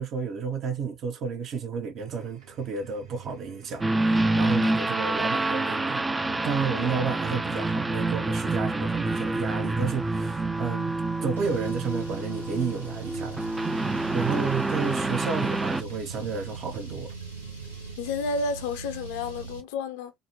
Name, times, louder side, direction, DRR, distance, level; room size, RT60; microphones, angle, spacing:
voice 1, 0.0-6.1 6.4-10.9 11.2-13.4 14.1-17.1, right 5 dB, 45° right, 0.7 m, -31 dB
sound 1, 2.0-18.0, right 6 dB, 70° right, 1.6 m, -47 dB
sound 2, 3.8-15.8, right 2 dB, 15° right, 0.4 m, -27 dB
Car, 11.4-19.6, right 4 dB, 85° right, 0.7 m, -40 dB
voice 2, 18.0-20.1, left 3 dB, 65° left, 0.6 m, -30 dB
3.9 x 2.1 x 2.7 m
figure-of-eight pair, 60°, 0 cm